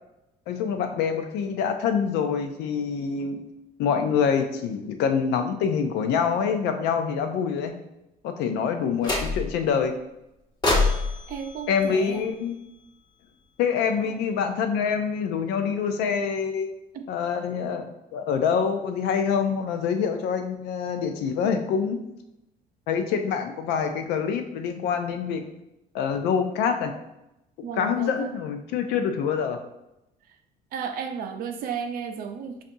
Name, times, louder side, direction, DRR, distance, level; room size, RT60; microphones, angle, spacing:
voice 1, 0.5-3.5 3.8-7.8 8.2-9.9 11.7-12.6 13.6-16.7 17.1-22.0 22.9-25.4 25.9-26.9 27.7-29.6, left 6 dB, 90° left, 6 dB, 0.5 m, -26 dB
sound 1, 9.0-9.7 10.6-12.9, left 3 dB, 25° left, 1.1 m, -27 dB
voice 2, 11.3-12.2 16.9-17.0 27.6-28.3 30.7-32.6, right 7 dB, 60° right, 5 dB, 0.5 m, -33 dB
5.3 x 2.4 x 2.6 m, 0.89 s
cardioid pair, 110°, 17 cm